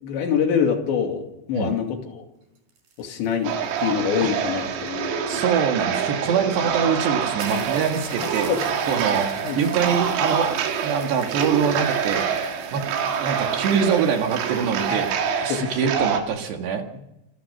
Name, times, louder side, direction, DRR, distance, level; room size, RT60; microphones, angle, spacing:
voice 1, 0.0-2.2 3.0-3.5 3.8-5.4 8.2-8.6 9.4-9.6 14.9-15.0 15.5-15.7, left 7 dB, 65° left, 3 dB, 4.4 m, -25 dB
sound 1, 2.4-5.2 6.1-6.2 6.4-6.5 6.8-6.9 7.4-15.6, right 4 dB, 45° right, 5.9 m, -46 dB
sound 2, 3.4-16.2, right 7 dB, 85° right, 5.0 m, -26 dB
voice 2, 5.3-8.5 8.9-9.3 9.6-10.6 10.8-12.3 12.7-12.9 13.2-15.1 15.4-16.8, right 7 dB, 65° right, 4 dB, 3.5 m, -24 dB
27.0 x 15.0 x 6.6 m, 0.94 s
omnidirectional pair, 6.0 m